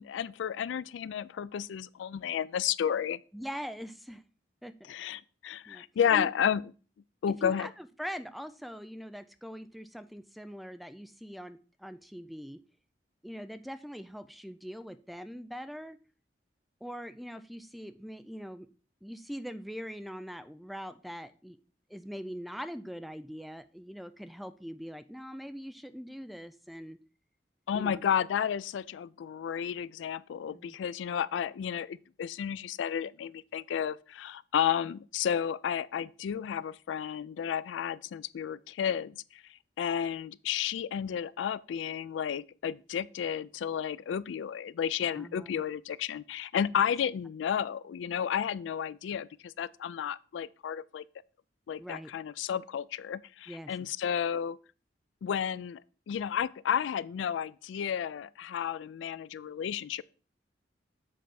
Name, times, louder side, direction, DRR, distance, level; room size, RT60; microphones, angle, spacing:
voice 1, 0.0-3.2 4.9-6.6 7.2-7.7 27.7-39.4 39.8-51.0 51.7-54.6 55.2-55.8 56.1-60.0, left 8 dB, 85° left, 0.3 m, -32 dB
voice 2, 3.3-4.2 4.6-4.9 5.7-5.8 6.1-6.3 7.4-12.6 13.2-16.0 16.8-18.7 19.0-21.6 21.9-27.0 27.7-28.0 30.5-30.8 45.2-45.6 51.8-52.1 53.5-53.7, equal, ahead, 0.3 m, -42 dB
7.6 x 3.4 x 5.8 m
head